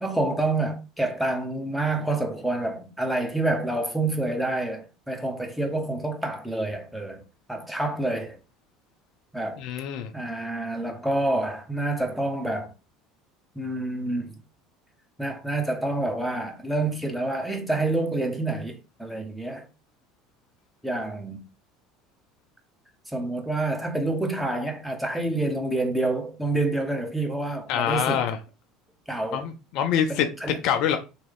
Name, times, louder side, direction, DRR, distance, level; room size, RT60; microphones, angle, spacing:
voice 1, 0.0-7.2 7.5-8.4 9.3-9.6 10.1-12.7 13.6-14.4 15.2-19.7 20.8-21.4 23.1-28.3 29.1-29.5 30.1-30.6, right 2 dB, 5° right, 0.8 m, -28 dB
voice 2, 9.6-10.1 27.7-28.4 29.3-30.3 30.6-31.0, left 9 dB, 60° left, 0.4 m, -25 dB
3.1 x 2.1 x 3.4 m
hypercardioid pair, 70°, 0 cm